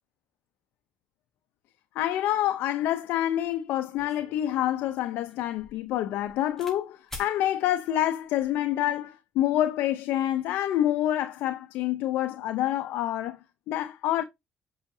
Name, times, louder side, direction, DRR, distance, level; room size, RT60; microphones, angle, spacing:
voice 1, 1.9-13.4 13.7-14.2, left 12 dB, 85° left, 0.7 m, -27 dB
sound 1, 3.4-3.5 4.0-6.8 7.1-7.4 8.2-8.6, left 2 dB, 10° left, 4.5 m, -47 dB
8.5 x 5.7 x 2.8 m
cardioid pair, 90°, 3 cm